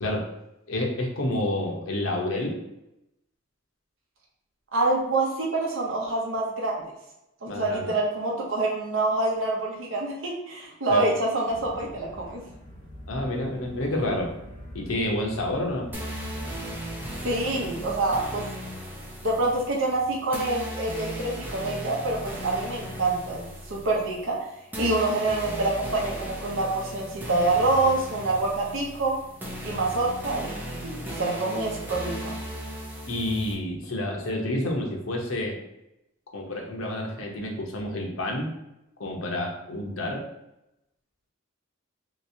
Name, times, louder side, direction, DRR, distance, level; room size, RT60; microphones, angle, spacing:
voice 1, 0.7-2.6 7.5-7.9 10.9-11.1 13.1-14.3 14.7-15.9 33.1-35.6 36.3-38.5 39.0-40.2, left 1 dB, 90° left, 0 dB, 0.8 m, -29 dB
voice 2, 4.7-6.7 7.4-12.4 17.2-18.4 19.2-24.4 24.8-29.2 29.6-32.4, right 2 dB, 75° right, -2 dB, 0.8 m, -26 dB
sound 1, 11.4-18.0, equal, 40° left, 1.0 m, -43 dB
sound 2, 15.9-33.5, equal, 10° right, 0.5 m, -37 dB
3.3 x 2.9 x 2.7 m, 0.89 s
head